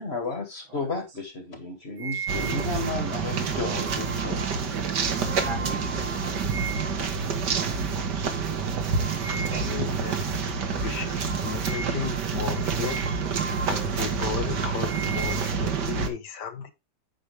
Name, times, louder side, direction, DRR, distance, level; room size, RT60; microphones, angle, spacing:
voice 1, 0.0-4.5 4.8-4.9, left 3 dB, 35° left, 1.8 m, -33 dB
sound 1, 2.0-7.1 7.6-7.8 8.2-8.4 8.9-9.8 10.1-10.3 10.7-10.8 11.3-13.9 14.3-16.1, right 5 dB, 40° right, 1.6 m, -38 dB
sound 2, 2.3-16.1, right 5 dB, 60° right, 1.8 m, -28 dB
voice 2, 5.4-6.8 9.5-9.7 10.6-11.1, right 3 dB, 90° right, 3.4 m, -40 dB
voice 3, 9.3-10.5 10.8-13.2 13.7-16.7, left 7 dB, 60° left, 1.6 m, -35 dB
9.3 x 6.1 x 3.2 m
omnidirectional pair, 2.1 m